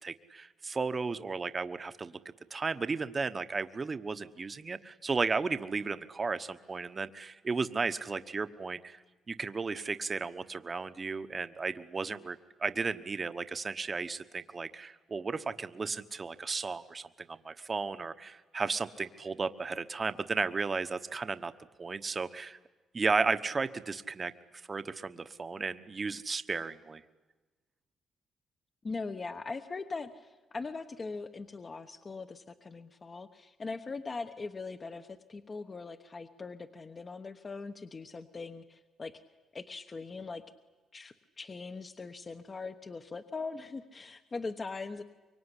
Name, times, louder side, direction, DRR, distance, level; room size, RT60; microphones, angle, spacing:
voice 1, 0.0-2.1 2.5-9.0 9.3-21.5 21.8-22.6 22.9-27.0, right 4 dB, 30° right, 11 dB, 1.1 m, -34 dB
voice 2, 28.8-39.2 39.5-40.4 40.9-45.0, left 4 dB, 30° left, 8 dB, 1.2 m, -41 dB
24.5 x 23.5 x 10.0 m, 1.2 s
cardioid pair, 90°, 0 cm